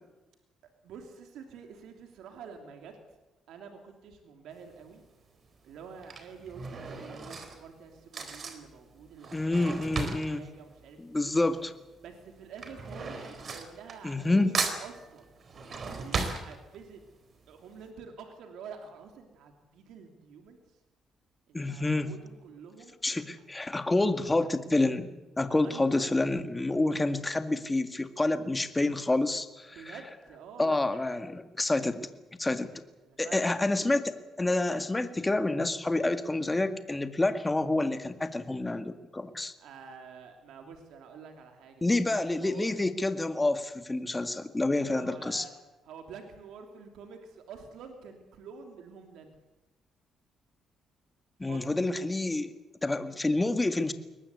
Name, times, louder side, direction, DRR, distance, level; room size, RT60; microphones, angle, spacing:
voice 1, 0.8-3.0 3.5-5.0 5.6-11.5 12.0-15.3 16.0-17.0 17.5-20.8 21.5-22.9 23.4-23.5 23.8-23.9 24.2-24.5 25.5-26.1 29.7-31.2 33.0-33.8 39.6-41.8 42.1-42.7 44.2-44.3 44.8-45.5 45.8-49.3 51.5-51.8, right 6 dB, 85° right, 4 dB, 2.9 m, -48 dB
Drawer open or close / Cutlery silverware, 4.5-4.9 5.8-11.7 11.9-14.3 14.5-17.1 17.5-17.6 17.8-17.9, right 4 dB, 50° right, 4.1 m, -36 dB
voice 2, 9.3-10.5 11.0-11.7 14.0-14.5 21.5-22.1 23.0-25.1 25.4-30.0 30.6-32.1 32.4-32.7 33.2-39.5 41.8-45.5 51.4-52.5 52.8-53.9, left 2 dB, 15° left, 9 dB, 1.9 m, -28 dB
22.5 x 19.5 x 8.4 m, 1.0 s
cardioid pair, 90°, 0 cm